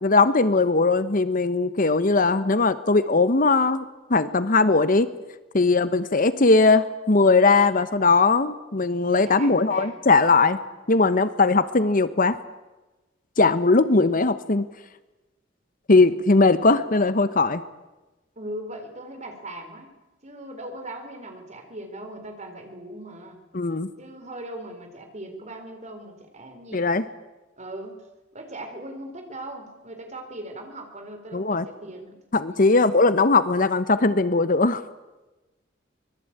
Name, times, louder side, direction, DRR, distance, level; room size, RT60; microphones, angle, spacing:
voice 1, 0.0-5.1 5.5-10.6 10.9-12.4 13.4-14.7 15.9-17.6 23.5-23.9 26.7-27.0 31.3-31.6 32.3-34.8, left 3 dB, 45° left, 13 dB, 1.0 m, -19 dB
voice 2, 5.5-5.9 9.2-10.0 18.4-19.9 20.2-23.4 24.0-26.9 27.6-32.2 32.5-32.8, right 1 dB, 35° right, 5 dB, 4.2 m, -39 dB
24.5 x 21.0 x 8.9 m, 1.1 s
head